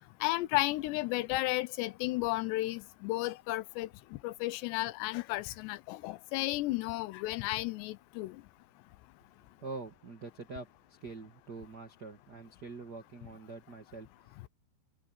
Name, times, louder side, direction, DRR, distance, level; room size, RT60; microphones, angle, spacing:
voice 1, 0.2-3.9 4.2-8.4, left 19 dB, 85° left, 2.9 m, -33 dB
voice 2, 9.6-14.5, right 4 dB, 85° right, 0.9 m, -45 dB
omnidirectional pair, 4.9 m